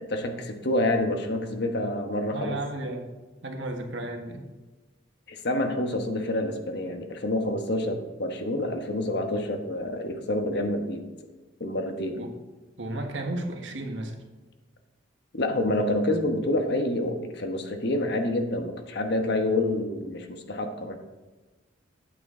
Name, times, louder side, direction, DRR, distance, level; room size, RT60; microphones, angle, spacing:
voice 1, 0.0-2.6 5.3-11.0 11.6-12.2 15.3-21.0, left 1 dB, 65° left, 5 dB, 1.2 m, -28 dB
voice 2, 2.3-3.1 3.4-4.4 12.2-12.3 12.8-14.1, right 1 dB, 70° right, 3 dB, 1.5 m, -33 dB
8.9 x 8.9 x 3.8 m, 1.2 s
head